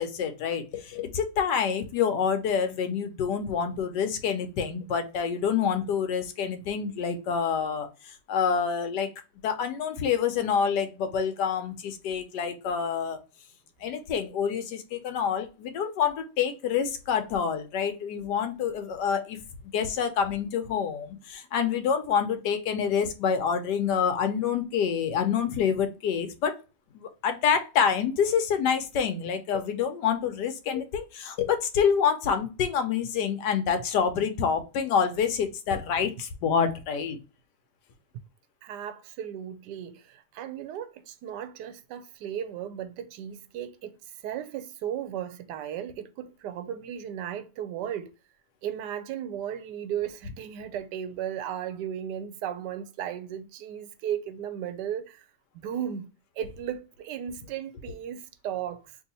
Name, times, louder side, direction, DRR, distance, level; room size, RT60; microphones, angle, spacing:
voice 1, 0.0-9.1 9.4-13.2 13.8-19.4 19.7-26.6 26.9-37.2, left 7 dB, 85° left, 1.3 m, -27 dB
voice 2, 38.6-48.1 48.6-55.2 55.5-56.1 56.4-59.0, right 9 dB, 85° right, 1.2 m, -35 dB
3.2 x 2.8 x 3.9 m
omnidirectional pair, 1.8 m